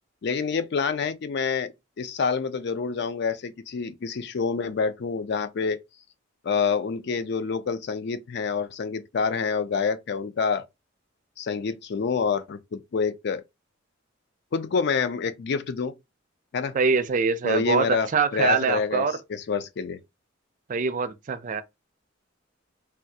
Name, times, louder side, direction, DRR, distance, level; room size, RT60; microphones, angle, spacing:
voice 1, 0.2-1.7 2.0-5.8 6.4-10.6 11.4-13.4 14.5-15.9 16.5-16.8 17.4-20.0, left 5 dB, 60° left, 0.4 m, -27 dB
voice 2, 16.7-19.2 20.7-21.6, right 4 dB, 40° right, 0.4 m, -24 dB
3.3 x 2.3 x 2.7 m
head